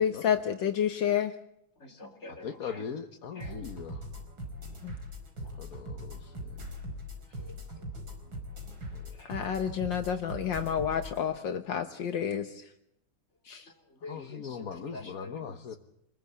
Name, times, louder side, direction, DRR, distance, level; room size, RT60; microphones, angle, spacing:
voice 1, 0.0-1.4 4.8-4.9 9.3-12.7 13.5-13.7, left 8 dB, 70° left, 6 dB, 1.8 m, -29 dB
voice 2, 1.8-2.9 3.3-3.6 5.4-5.5 7.4-7.9 9.1-9.3 13.7-15.8, left 2 dB, 35° left, 3 dB, 3.9 m, -47 dB
voice 3, 2.4-4.0 5.6-6.3 8.9-9.0 14.1-15.8, left 6 dB, 50° left, 5 dB, 1.5 m, -40 dB
sound 1, 3.4-11.2, equal, 85° right, 5.8 m, -41 dB
27.0 x 21.0 x 8.4 m, 0.78 s
omnidirectional pair, 2.1 m